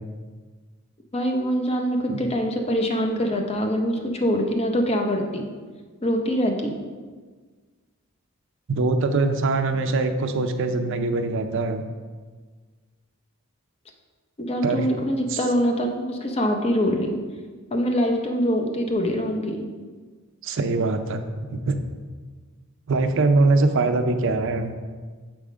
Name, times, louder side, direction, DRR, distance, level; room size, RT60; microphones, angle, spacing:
voice 1, 1.1-5.5 6.0-6.8 14.4-17.2 17.7-19.7, equal, 30° left, 3 dB, 0.7 m, -24 dB
voice 2, 8.7-11.8 14.6-14.9 15.3-15.4 20.4-21.8 22.9-24.8, right 3 dB, 60° right, 7 dB, 0.5 m, -23 dB
7.4 x 3.6 x 5.0 m, 1.5 s
head